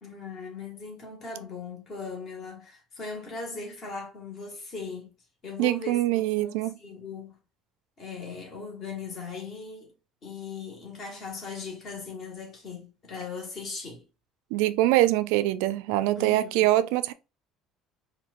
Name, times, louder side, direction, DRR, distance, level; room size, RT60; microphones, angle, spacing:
voice 1, 0.0-5.1 5.4-7.4 8.0-9.9 10.2-14.0 16.2-16.7, left 4 dB, 30° left, 1.5 m, -39 dB
voice 2, 5.6-6.7 14.5-17.1, right 15 dB, 85° right, 0.3 m, -24 dB
4.3 x 2.6 x 2.5 m
cardioid pair, 170°, 0 cm